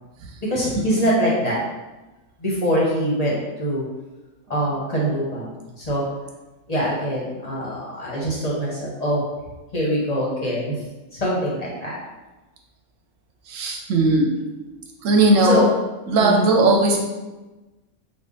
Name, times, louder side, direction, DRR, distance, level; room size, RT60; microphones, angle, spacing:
voice 1, 0.4-1.6 2.4-3.9 4.5-5.5 5.8-6.0 6.7-9.2 9.7-10.8 11.1-12.0 15.4-15.7 16.2-16.4, equal, 40° left, -5 dB, 0.7 m, -23 dB
voice 2, 13.5-14.4 15.0-15.7 16.1-17.0, right 2 dB, 80° right, 1 dB, 1.0 m, -18 dB
3.6 x 2.1 x 3.7 m, 1.1 s
omnidirectional pair, 1.3 m